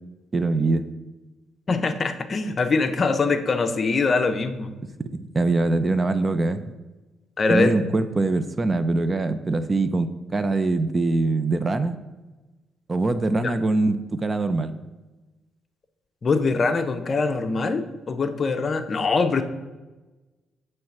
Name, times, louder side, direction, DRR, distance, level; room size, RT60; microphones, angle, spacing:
voice 1, 0.3-0.9 5.2-6.6 7.5-12.0 12.9-14.7, right 2 dB, 30° right, 11 dB, 0.4 m, -23 dB
voice 2, 1.7-4.7 7.4-7.7 16.2-19.4, left 4 dB, 40° left, 9 dB, 0.5 m, -23 dB
7.6 x 3.2 x 5.8 m, 1.2 s
cardioid pair, 90°, 0 cm